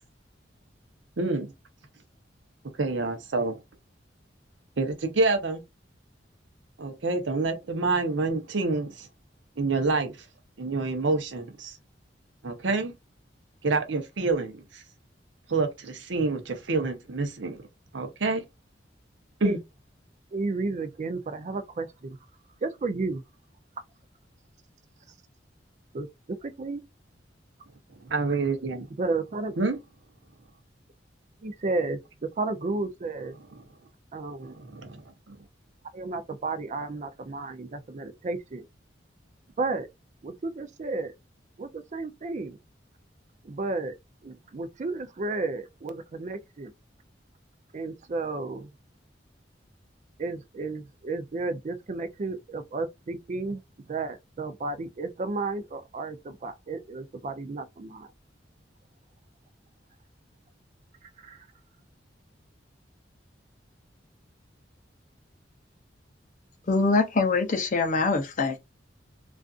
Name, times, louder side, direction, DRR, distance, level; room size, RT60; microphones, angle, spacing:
voice 1, 1.2-1.5 2.8-3.6 4.8-5.6 6.8-9.1 9.6-10.2 10.6-11.8 12.4-12.9 13.6-14.8 15.5-17.6 17.9-18.4 19.4-19.6 28.0-28.9 29.6-29.8 34.4-35.4, right 3 dB, 80° right, 0.7 m, -27 dB
voice 2, 20.3-22.2 22.6-23.2 25.9-26.1 26.4-26.8 29.0-29.5 31.4-32.0 32.4-33.3 34.1-34.6 35.9-38.7 39.6-39.9 40.2-41.1 41.6-42.6 43.4-43.9 44.2-46.7 47.7-48.7 50.2-58.1 61.2-61.5, right 3 dB, 40° right, 0.4 m, -32 dB
voice 3, 66.7-68.6, left 3 dB, 45° left, 0.6 m, -24 dB
2.4 x 2.4 x 2.4 m
head